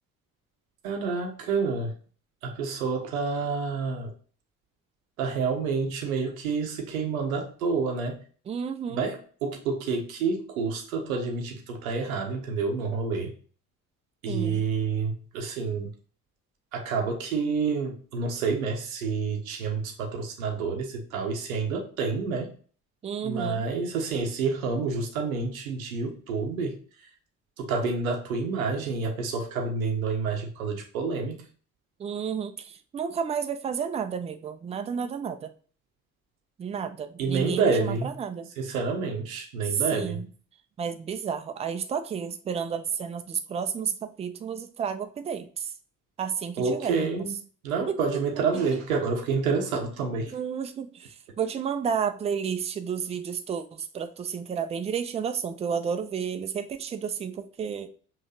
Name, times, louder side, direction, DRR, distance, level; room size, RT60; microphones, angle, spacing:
voice 1, 0.8-1.9 2.4-4.1 5.2-8.2 8.9-13.3 14.2-15.9 16.7-22.5 23.2-26.8 27.6-31.4 37.2-38.1 38.6-40.2 46.6-47.3 47.6-50.3, right 4 dB, 75° right, 3 dB, 0.8 m, -28 dB
voice 2, 8.5-9.0 14.3-14.6 23.0-23.6 32.0-35.5 36.6-38.5 39.7-40.3 40.8-45.7 46.2-47.1 47.9-48.0 50.3-57.9, right 7 dB, 15° right, 9 dB, 0.4 m, -31 dB
5.5 x 2.9 x 2.7 m, 0.42 s
figure-of-eight pair, 50°, 42 cm